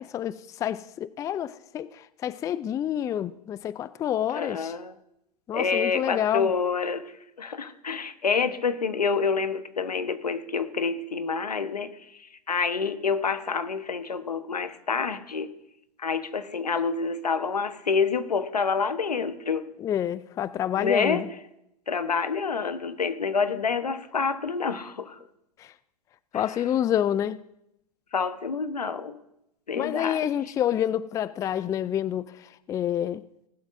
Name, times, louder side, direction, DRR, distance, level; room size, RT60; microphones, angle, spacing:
voice 1, 0.0-4.7 5.5-6.5 19.8-21.3 25.6-25.7 26.3-27.4 29.8-33.2, left 10 dB, 15° left, 0.3 m, -28 dB
voice 2, 4.3-4.9 5.5-15.5 16.0-19.7 20.7-21.2 21.9-25.2 26.3-26.5 28.1-29.2 29.7-30.3, left 5 dB, 85° left, 1.1 m, -28 dB
19.0 x 12.0 x 2.6 m
figure-of-eight pair, 100°, 20 cm